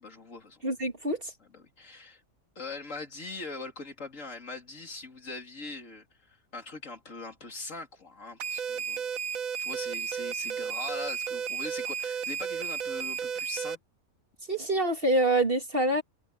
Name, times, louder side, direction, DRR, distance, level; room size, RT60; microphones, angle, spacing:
voice 1, 0.0-0.6 1.4-2.2 2.6-9.0 9.6-13.8, left 3 dB, 65° left, 3.7 m, -41 dB
voice 2, 0.6-1.3 14.5-16.0, right 1 dB, 40° right, 2.8 m, -26 dB
sound 1, 8.4-13.7, right 7 dB, 75° right, 1.3 m, -33 dB
omnidirectional pair, 1.5 m